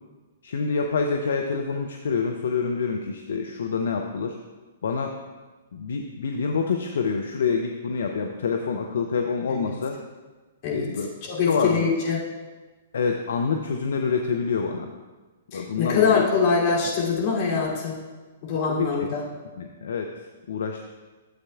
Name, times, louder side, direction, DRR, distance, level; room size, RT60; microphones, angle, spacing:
voice 1, 0.4-4.4 4.8-5.2 5.7-10.0 10.7-11.1 11.5-11.9 12.9-14.9 15.5-16.3 18.7-19.1 19.6-20.8, left 5 dB, 65° left, 4 dB, 0.6 m, -27 dB
voice 2, 11.3-12.2 15.5-18.0 18.4-19.2, left 5 dB, 40° left, -4 dB, 2.8 m, -23 dB
12.5 x 7.8 x 2.4 m, 1.3 s
figure-of-eight pair, 115°, 0 cm